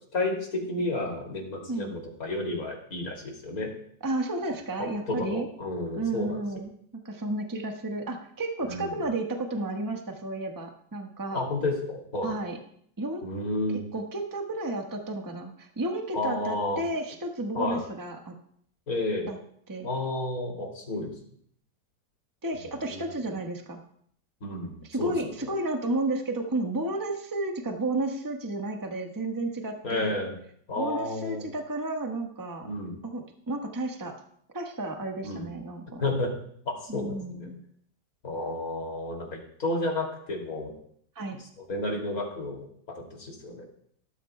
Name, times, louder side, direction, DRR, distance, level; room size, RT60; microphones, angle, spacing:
voice 1, 0.1-3.7 5.1-6.4 8.7-8.8 11.3-12.4 13.2-13.8 16.1-16.8 17.5-17.8 18.9-19.3 19.8-21.1 22.9-23.0 24.4-25.3 29.8-30.3 30.7-31.4 32.6-33.0 35.2-35.5 36.0-36.3 36.6-37.5 38.2-40.7 41.3-41.4 41.7-43.6, left 2 dB, 55° left, 0 dB, 3.1 m, -31 dB
voice 2, 4.0-5.5 6.0-6.7 7.0-11.5 12.2-12.6 13.0-13.3 13.7-18.3 19.3-19.4 19.7-19.9 22.4-23.8 24.8-30.2 30.8-32.7 33.0-34.2 34.5-36.0 36.9-37.6 41.1-41.4, right 2 dB, 15° right, 2 dB, 1.0 m, -32 dB
18.0 x 13.0 x 2.2 m, 0.64 s
omnidirectional pair, 1.9 m